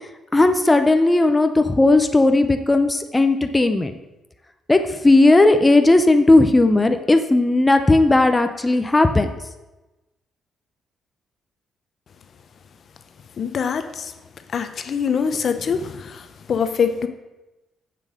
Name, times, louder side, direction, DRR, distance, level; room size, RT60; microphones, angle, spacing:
voice 1, 0.3-3.9 4.7-9.3, left 2 dB, 15° left, 7 dB, 0.7 m, -16 dB
voice 2, 13.4-14.1 14.5-17.1, left 6 dB, 55° left, 9 dB, 0.8 m, -24 dB
7.7 x 7.2 x 6.4 m, 1.0 s
cardioid pair, 95°, 0 cm